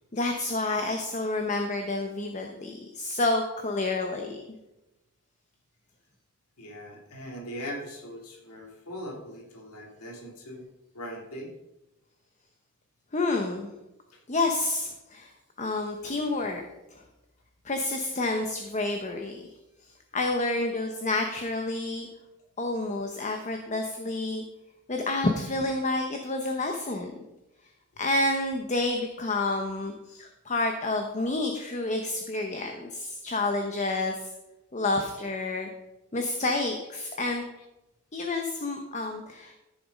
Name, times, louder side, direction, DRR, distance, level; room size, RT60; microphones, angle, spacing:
voice 1, 0.1-4.4 13.1-13.7 14.3-15.3 15.6-16.6 16.9-17.0 17.6-19.5 20.1-22.1 22.6-24.4 24.9-27.1 28.0-34.3 34.7-35.7 36.1-37.5 38.1-39.5, left 2 dB, 30° left, 4 dB, 0.9 m, -29 dB
voice 2, 6.6-10.6 10.9-11.5, equal, 90° left, -1 dB, 2.8 m, -40 dB
13.5 x 7.2 x 5.3 m, 0.96 s
head